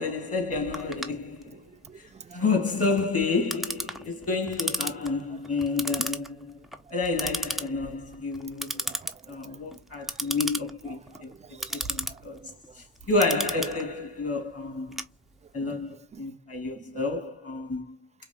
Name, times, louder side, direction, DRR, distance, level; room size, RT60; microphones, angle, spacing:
voice 1, 0.0-1.6 2.3-6.5 6.9-8.8 9.3-11.3 11.7-12.5 13.1-15.0 15.5-17.9, left 3 dB, 30° left, 3.0 m, -29 dB
Clock, 0.7-15.7, right 1 dB, ahead, 0.8 m, -35 dB
voice 2, 1.9-2.4 8.7-9.2 10.9-11.9 12.4-12.5 15.6-15.8 16.1-16.3 16.8-16.9, right 6 dB, 15° right, 0.3 m, -48 dB
4.9 x 3.3 x 2.5 m
hypercardioid pair, 70°, 46 cm